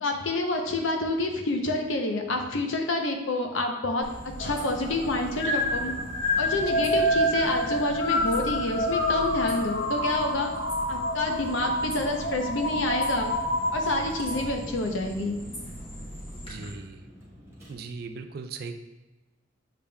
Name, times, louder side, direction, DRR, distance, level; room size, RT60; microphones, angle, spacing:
voice 1, 0.0-4.1 4.4-5.9 6.4-10.5 10.9-13.3 13.7-15.4, left 2 dB, 90° left, 3 dB, 0.6 m, -28 dB
sound 1, 4.0-16.7, equal, 30° left, 1.1 m, -41 dB
sound 2, 4.4-14.5, equal, 70° left, 0.9 m, -28 dB
voice 2, 6.6-6.9 16.4-17.0 17.7-18.8, right 4 dB, 50° right, 7 dB, 0.3 m, -39 dB
Vehicle, 12.3-17.7, equal, 15° right, 0.9 m, -49 dB
6.6 x 3.5 x 2.2 m, 1.1 s
head